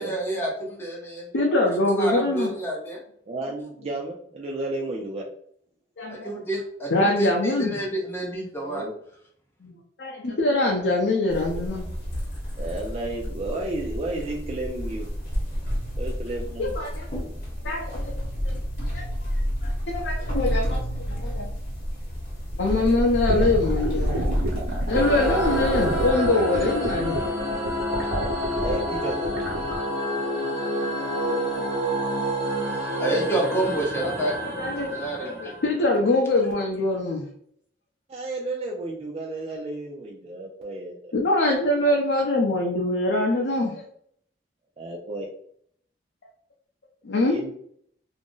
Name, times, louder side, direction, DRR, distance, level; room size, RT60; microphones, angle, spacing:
voice 1, 0.0-1.3 1.9-3.0 6.1-8.8 33.0-34.3 34.9-35.5, right 1 dB, 15° left, -2 dB, 0.7 m, -28 dB
voice 2, 1.3-2.5 6.0-6.3 6.9-7.7 9.6-11.9 16.6-17.1 17.6-18.1 18.4-18.5 18.9-19.3 19.6-21.5 22.6-24.3 24.9-27.2 31.2-31.4 34.6-34.9 35.3-37.2 41.1-43.7 47.1-47.4, left 2 dB, 75° left, -1 dB, 0.5 m, -24 dB
voice 3, 3.3-5.3 8.6-8.9 12.6-15.1 16.0-16.7 28.6-29.4 38.1-41.1 44.8-45.3 47.2-47.5, right 2 dB, 35° right, -1 dB, 0.3 m, -32 dB
sound 1, 11.3-26.1, equal, 45° left, 1.0 m, -30 dB
sound 2, 23.3-29.8, right 1 dB, 65° right, 0.8 m, -30 dB
sound 3, 24.9-35.9, equal, 15° right, 1.0 m, -28 dB
2.5 x 2.0 x 3.6 m, 0.65 s
head